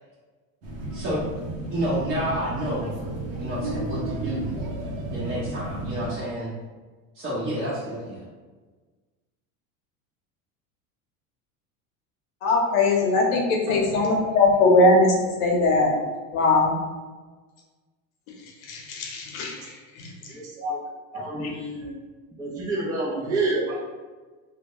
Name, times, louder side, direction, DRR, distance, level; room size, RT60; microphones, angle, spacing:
sound 1, 0.6-6.1, right 1 dB, 85° right, 0.8 m, -33 dB
voice 1, 0.9-1.3 1.7-2.9 3.4-4.5 5.1-6.5 7.1-8.3, right 1 dB, 25° right, -10 dB, 0.7 m, -29 dB
voice 2, 12.4-15.1 15.4-15.9 16.3-16.7 18.7-20.1 21.4-21.5, left 2 dB, 75° left, 0 dB, 0.8 m, -20 dB
voice 3, 13.7-14.2 19.6-19.7 20.3-20.8 21.1-22.0 22.4-23.9, right 2 dB, 10° right, -5 dB, 0.3 m, -29 dB
2.1 x 2.1 x 2.9 m, 1.3 s
supercardioid pair, 105°, 42 cm